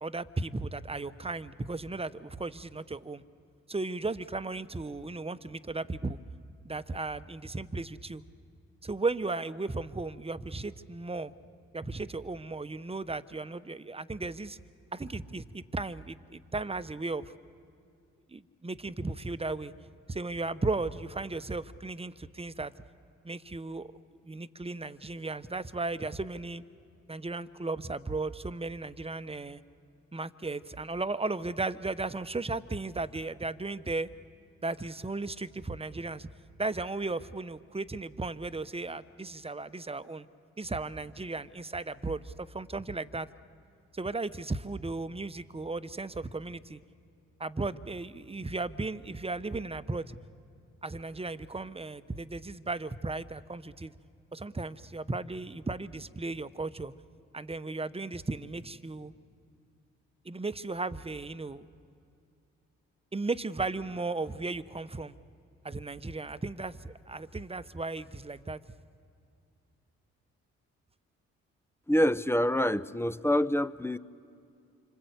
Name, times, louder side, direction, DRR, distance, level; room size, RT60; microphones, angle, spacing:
voice 1, 0.0-3.2 3.7-6.2 6.6-8.2 8.8-11.3 11.7-14.6 14.9-17.3 18.3-19.7 20.1-22.7 23.2-23.9 24.2-26.6 27.1-29.6 30.1-34.1 34.6-36.3 36.6-40.3 40.6-43.3 43.9-46.8 47.4-50.2 50.8-53.9 54.3-56.9 57.3-59.1 60.2-61.7 63.1-65.1 65.6-68.6, right 3 dB, 15° right, 14 dB, 1.1 m, -35 dB
voice 2, 71.9-74.0, equal, 5° left, 13 dB, 0.8 m, -26 dB
28.0 x 25.5 x 8.2 m, 2.5 s
hypercardioid pair, 45°, 33 cm